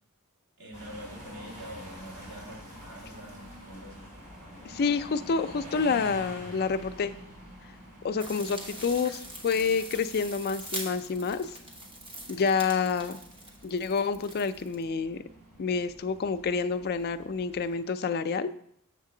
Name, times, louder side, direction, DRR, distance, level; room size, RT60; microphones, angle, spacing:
voice 1, 0.6-4.1, right 1 dB, 70° right, -3 dB, 2.2 m, -45 dB
sound 1, 0.7-17.8, equal, 40° right, 3.3 m, -48 dB
voice 2, 4.6-7.1 8.0-11.5 12.3-13.2 13.6-15.2 15.6-18.5, left 5 dB, 45° left, 10 dB, 0.4 m, -28 dB
sound 2, 8.2-14.8, right 1 dB, 25° right, 1.1 m, -43 dB
7.3 x 6.6 x 3.8 m, 0.70 s
head